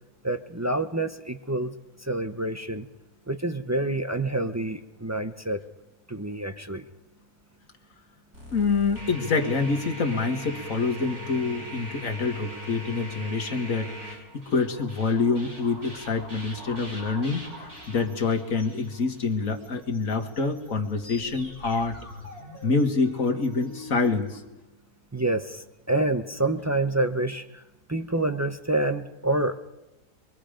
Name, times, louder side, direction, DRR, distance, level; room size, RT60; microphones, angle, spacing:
voice 1, 0.2-1.7 2.0-2.9 3.3-5.7 6.1-6.8 25.1-27.6 27.9-29.6, right 2 dB, 25° right, 7 dB, 0.3 m, -27 dB
sound 1, 8.3-24.4, left 1 dB, 70° right, 8.6 m, -42 dB
voice 2, 8.5-22.0 22.6-24.4, left 4 dB, 60° left, 5 dB, 2.1 m, -26 dB
25.0 x 23.5 x 5.1 m, 1.0 s
omnidirectional pair, 1.6 m